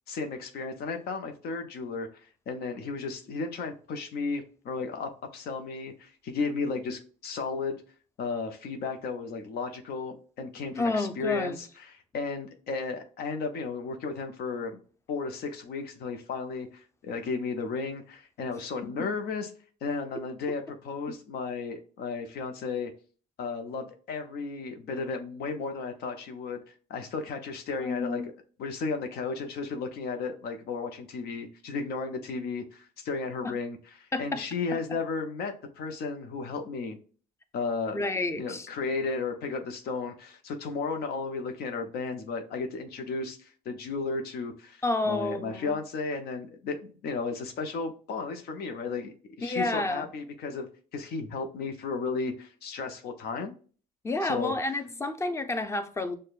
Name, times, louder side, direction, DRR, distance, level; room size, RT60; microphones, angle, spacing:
voice 1, 0.1-7.8 8.2-14.8 15.1-19.5 19.8-22.9 23.4-28.3 28.6-37.0 37.5-38.0 38.4-53.5 54.2-54.7, left 4 dB, 70° left, 0.7 m, -34 dB
voice 2, 10.7-11.6 19.0-19.1 20.2-20.3 27.8-28.3 33.4-33.5 34.1-34.4 37.9-38.7 44.8-45.7 49.4-50.1 54.0-56.1, left 2 dB, 15° left, 0.5 m, -30 dB
6.3 x 2.2 x 2.4 m
cardioid pair, 110°, 17 cm